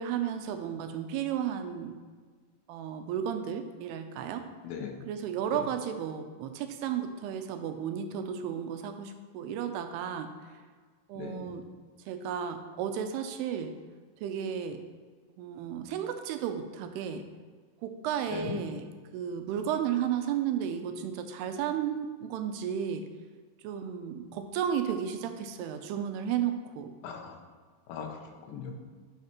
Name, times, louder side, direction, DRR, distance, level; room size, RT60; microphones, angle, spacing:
voice 1, 0.0-2.0 2.7-4.5 5.1-10.6 11.1-11.6 12.1-13.8 14.2-14.8 15.3-17.2 17.8-18.9 19.1-23.1 23.6-26.9, right 8 dB, 85° right, 7 dB, 2.5 m, -33 dB
voice 2, 4.6-5.0 11.1-11.5 18.3-18.6 27.0-27.4 27.9-28.7, left 6 dB, 75° left, 2 dB, 2.4 m, -39 dB
10.5 x 5.6 x 3.0 m, 1.5 s
omnidirectional pair, 4.7 m